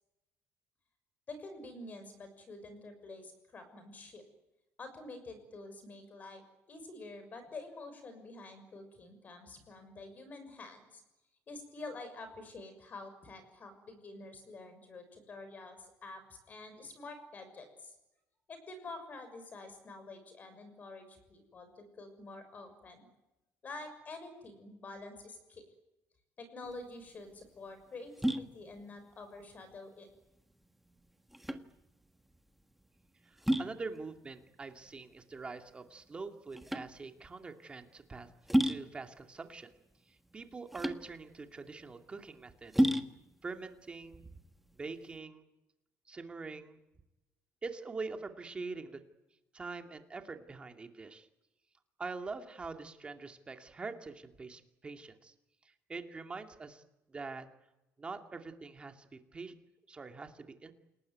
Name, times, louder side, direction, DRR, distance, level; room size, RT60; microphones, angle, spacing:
voice 1, 1.3-4.2 4.8-11.0 11.5-18.0 18.5-23.0 23.6-25.6 26.4-30.1, left 2 dB, 30° left, 9 dB, 6.4 m, -48 dB
sound 1, 26.6-45.2, equal, 5° right, 1.4 m, -35 dB
voice 2, 33.2-38.3 38.6-39.7 40.3-42.9 43.4-44.3 44.8-45.4 46.1-46.8 47.6-49.0 49.5-51.3 52.0-55.3 55.9-56.8 57.1-57.5 58.0-59.5 59.9-60.7, right 4 dB, 20° right, 6 dB, 2.4 m, -44 dB
28.5 x 19.5 x 9.5 m, 0.96 s
cardioid pair, 165°, 6 cm